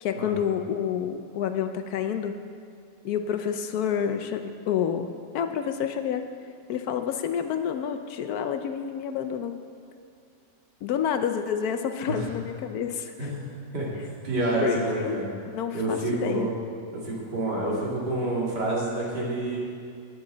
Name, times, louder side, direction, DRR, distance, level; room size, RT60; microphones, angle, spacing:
voice 1, 0.0-2.4 3.0-6.3 6.7-9.5 10.8-13.3 14.6-15.2 15.5-16.5, left 8 dB, 70° left, 8 dB, 0.9 m, -29 dB
voice 2, 14.2-15.3 15.7-16.5 16.9-19.6, right 2 dB, 60° right, -5 dB, 2.9 m, -28 dB
15.5 x 9.4 x 3.9 m, 2.3 s
omnidirectional pair, 2.0 m